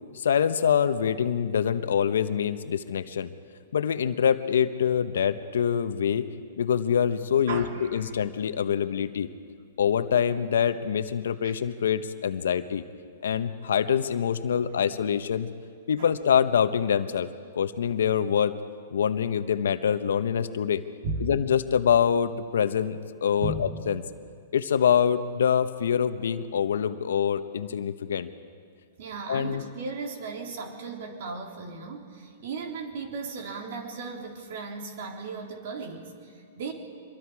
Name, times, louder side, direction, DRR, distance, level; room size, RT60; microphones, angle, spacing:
voice 1, 0.1-3.3 3.7-6.3 6.6-7.7 7.9-9.3 9.8-12.8 13.2-15.5 15.9-17.3 17.5-18.6 18.9-20.8 21.2-24.0 24.5-28.3 29.3-29.6, left 8 dB, 75° left, 11 dB, 1.1 m, -25 dB
voice 2, 7.5-8.2 11.4-11.5 16.0-16.1 21.0-21.3 23.4-23.7 29.0-36.7, right 3 dB, 60° right, 2 dB, 3.8 m, -36 dB
25.5 x 22.5 x 4.9 m, 2.2 s
hypercardioid pair, 130°, 0 cm